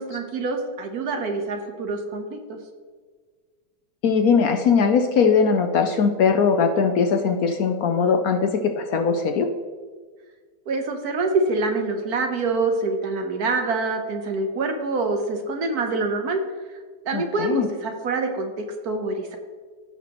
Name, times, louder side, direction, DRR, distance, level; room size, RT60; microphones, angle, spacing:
voice 1, 0.0-2.6 10.7-16.4 17.1-19.4, right 3 dB, 60° right, 4 dB, 1.4 m, -26 dB
voice 2, 4.0-9.5 17.1-17.7, left 5 dB, 65° left, 5 dB, 1.0 m, -20 dB
15.5 x 5.8 x 3.0 m, 1.5 s
omnidirectional pair, 1.9 m